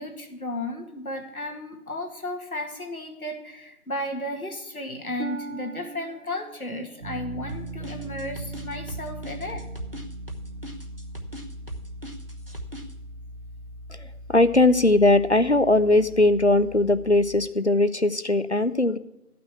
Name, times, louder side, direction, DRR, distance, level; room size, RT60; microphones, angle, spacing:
voice 1, 0.0-9.7, left 1 dB, 70° left, 2 dB, 2.2 m, -34 dB
Harp, 5.2-8.9 9.5-9.9 10.5-10.6, right 3 dB, 55° right, 0.5 m, -42 dB
sound 1, 7.0-17.5, right 1 dB, 80° right, 2.0 m, -40 dB
sound 2, 7.5-12.9, right 1 dB, 40° right, 0.9 m, -39 dB
voice 2, 13.9-19.0, left 2 dB, 50° left, 13 dB, 0.5 m, -20 dB
12.0 x 6.0 x 8.4 m, 0.88 s
figure-of-eight pair, 175°, 45 cm